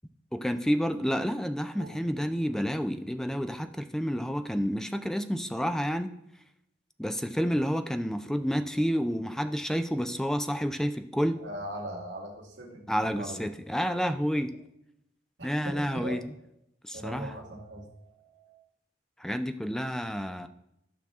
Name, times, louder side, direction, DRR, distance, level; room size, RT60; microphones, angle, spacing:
voice 1, 0.3-6.1 7.0-11.4 12.9-14.5 15.4-16.2 16.8-17.3 19.2-20.5, equal, 5° left, 9 dB, 0.4 m, -29 dB
voice 2, 1.7-2.3 11.4-13.5 15.4-16.2 16.9-18.6, right 1 dB, 90° right, -1 dB, 2.0 m, -40 dB
11.5 x 5.7 x 3.6 m, 0.80 s
head